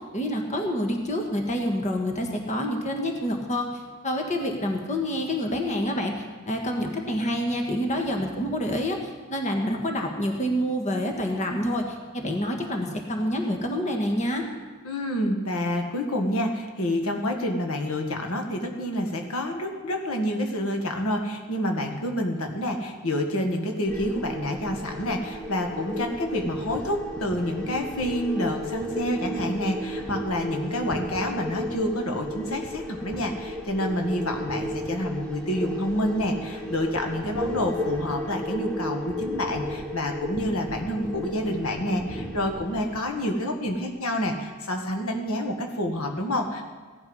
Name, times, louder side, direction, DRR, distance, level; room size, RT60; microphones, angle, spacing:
voice 1, 0.0-14.4, equal, 35° left, 2 dB, 1.5 m, -27 dB
voice 2, 14.8-46.6, left 1 dB, 75° left, 3 dB, 1.8 m, -28 dB
sound 1, 23.9-43.0, equal, 5° left, 1.4 m, -34 dB
16.5 x 11.5 x 5.5 m, 1.4 s
head